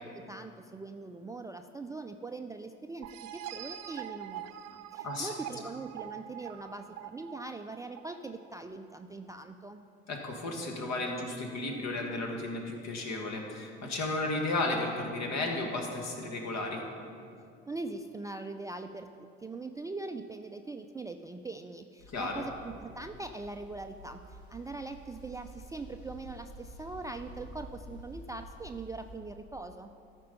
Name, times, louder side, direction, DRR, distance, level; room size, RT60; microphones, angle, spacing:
voice 1, 0.0-9.8 17.7-29.9, right 3 dB, 10° right, 6 dB, 0.3 m, -42 dB
sound 1, 3.0-8.5, right 11 dB, 55° right, 0.6 m, -44 dB
voice 2, 10.1-16.8 22.1-22.5, left 2 dB, 55° left, 2 dB, 1.7 m, -34 dB
sound 2, 22.0-29.2, equal, 85° left, 1.4 m, -50 dB
13.5 x 5.3 x 5.3 m, 2.4 s
hypercardioid pair, 60°, 32 cm